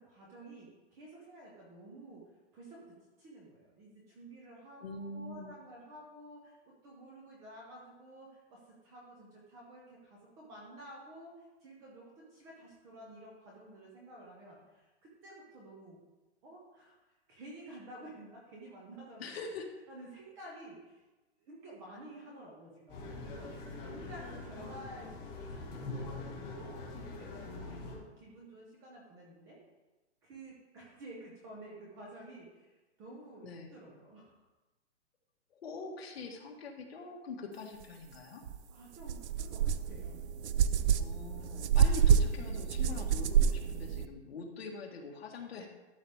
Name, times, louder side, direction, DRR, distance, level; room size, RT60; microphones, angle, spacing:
voice 1, 0.0-2.2 2.5-16.0 16.4-19.3 19.9-21.0 21.4-23.5 23.8-29.6 30.2-34.3 38.7-40.2, right 1 dB, 10° right, -3 dB, 0.5 m, -51 dB
voice 2, 4.8-5.5 19.2-19.7 33.4-33.7 35.5-38.4 41.0-45.7, left 3 dB, 60° left, 2 dB, 1.7 m, -44 dB
sound 1, 22.9-28.0, left 3 dB, 25° left, 2.2 m, -43 dB
sound 2, 38.5-38.6 39.0-44.1, right 8 dB, 75° right, 0.6 m, -28 dB
12.5 x 6.4 x 3.5 m, 1.1 s
hypercardioid pair, 165°, 34 cm